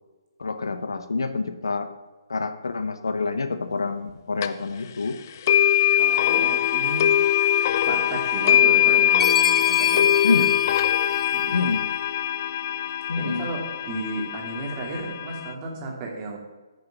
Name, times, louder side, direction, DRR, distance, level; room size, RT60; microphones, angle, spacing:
voice 1, 0.4-1.9 2.3-5.2 10.2-10.5 11.5-11.9 13.1-13.5, left 4 dB, 80° left, 9 dB, 1.0 m, -27 dB
sound 1, 4.4-4.5 5.5-15.5, left 10 dB, 45° left, 0.6 m, -22 dB
voice 2, 6.0-7.1 7.8-10.5 10.9-11.1 11.3-11.6 13.2-16.4, right 2 dB, 30° right, 0 dB, 2.5 m, -34 dB
Chime, 9.2-11.7, left 5 dB, 10° left, 0.3 m, -32 dB
9.7 x 6.7 x 5.9 m, 1.2 s
hypercardioid pair, 145°, 2 cm